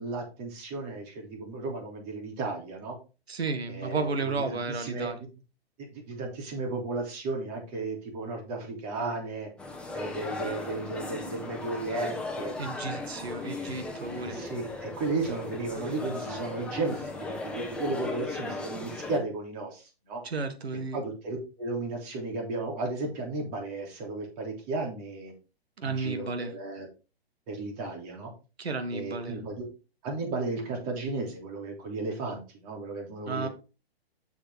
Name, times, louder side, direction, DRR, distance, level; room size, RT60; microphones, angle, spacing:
voice 1, 0.0-3.0 3.7-5.1 5.9-9.5 9.9-12.5 14.1-20.2 20.9-25.3 25.8-26.9 27.5-28.3 28.9-29.7 30.0-33.5, right 3 dB, 40° right, 3.5 m, -34 dB
voice 2, 3.3-5.2 12.6-14.4 20.2-21.0 25.8-26.5 28.6-29.4 33.2-33.5, right 4 dB, 80° right, 1.8 m, -33 dB
sound 1, 9.6-19.2, left 2 dB, 5° left, 1.3 m, -37 dB
7.1 x 7.0 x 3.8 m
hypercardioid pair, 130°, 31 cm